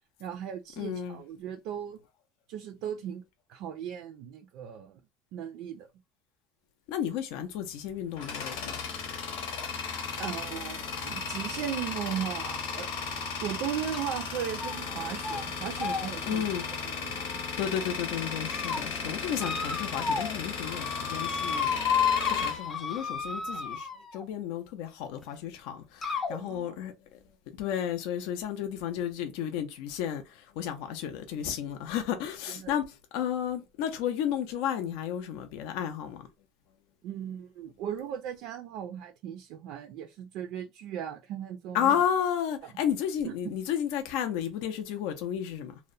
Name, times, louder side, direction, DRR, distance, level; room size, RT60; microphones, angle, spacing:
voice 1, 0.2-2.0 2.5-3.2 3.5-5.0 5.3-5.9 10.2-12.9 13.4-16.5 16.7-17.3 26.4-26.8 32.5-32.8 37.0-42.0 43.2-43.5, right 9 dB, 60° right, 0.3 m, -37 dB
voice 2, 0.8-1.2 6.9-8.7 16.3-16.7 17.3-27.2 27.6-36.3 41.7-45.8, left 9 dB, 70° left, 0.4 m, -32 dB
Tools, 7.7-23.5, left 5 dB, 90° left, 0.9 m, -36 dB
sound 1, 13.9-14.2 14.6-14.9 15.2-15.4 15.8-17.7 18.2-18.8 19.4-20.4 20.6-24.2 25.2-25.3 26.0-26.4, left 6 dB, 25° left, 0.6 m, -32 dB
2.7 x 2.0 x 2.4 m
cardioid pair, 140°, 0 cm